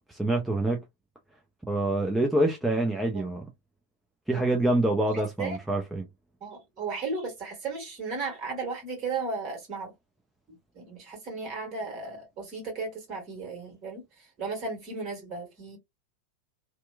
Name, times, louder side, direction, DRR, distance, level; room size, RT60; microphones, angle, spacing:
voice 1, 0.1-0.8 1.7-3.5 4.3-6.1, right 1 dB, 5° right, 0.4 m, -26 dB
voice 2, 5.1-5.6 6.4-9.9 10.5-15.8, right 4 dB, 35° right, 1.5 m, -35 dB
2.8 x 2.1 x 2.2 m
figure-of-eight pair, 90°, 0 cm